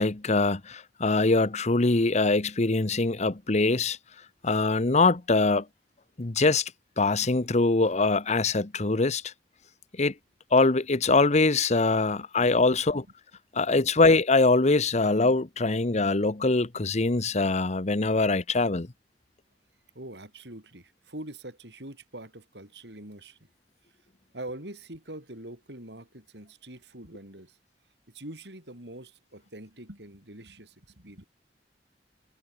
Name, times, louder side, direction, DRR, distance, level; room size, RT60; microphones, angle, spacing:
voice 1, 0.0-4.0 4.4-5.7 6.2-6.7 7.0-9.3 10.0-10.1 10.5-13.0 13.5-18.9, left 3 dB, 40° left, 1.0 m, -23 dB
voice 2, 19.9-23.4 24.3-27.6 28.1-31.2, right 1 dB, 70° right, 7.7 m, -44 dB
head